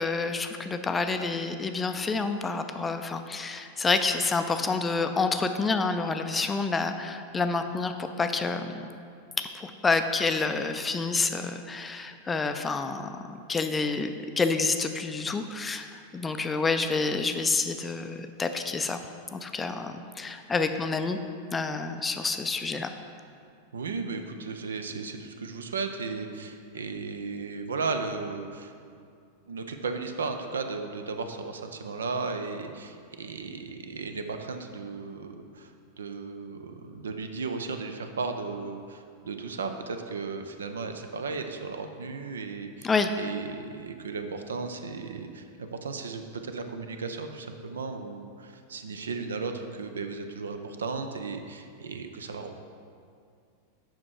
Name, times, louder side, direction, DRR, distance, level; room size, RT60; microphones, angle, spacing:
voice 1, 0.0-8.9 9.4-19.0 19.3-21.2 21.5-22.9 42.8-43.1, left 4 dB, 15° left, 8 dB, 0.4 m, -28 dB
voice 2, 23.7-28.7 29.4-35.7 36.0-52.6, right 4 dB, 70° right, 7 dB, 0.5 m, -35 dB
7.3 x 5.8 x 4.7 m, 2.3 s
figure-of-eight pair, 90°, 0 cm